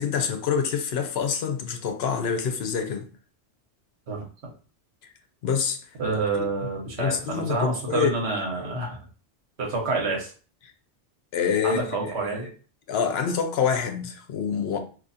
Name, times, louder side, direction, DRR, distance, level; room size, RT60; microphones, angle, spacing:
voice 1, 0.0-3.1 5.4-5.8 6.3-6.5 7.0-8.1 11.3-12.1 12.9-14.8, left 7 dB, 70° left, 0.8 m, -26 dB
voice 2, 4.1-4.5 6.0-9.0 9.6-10.3 11.6-12.5, right 3 dB, 70° right, 1.3 m, -28 dB
4.0 x 2.7 x 2.5 m
omnidirectional pair, 1.2 m